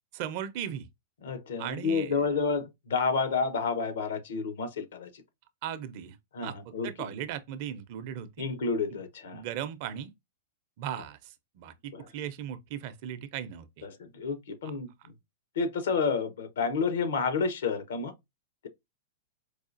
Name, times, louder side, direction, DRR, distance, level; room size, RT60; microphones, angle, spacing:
voice 1, 0.1-0.9 1.6-2.5 5.6-6.2 6.4-8.5 8.9-9.0 9.3-10.1 10.8-13.9 14.6-14.7, right 10 dB, 55° right, 0.6 m, -38 dB
voice 2, 1.2-5.2 6.3-6.9 8.4-9.4 11.9-12.1 13.8-14.9 15.6-18.1, left 5 dB, 75° left, 0.8 m, -30 dB
4.7 x 2.4 x 2.5 m
hypercardioid pair, 115°, 0 cm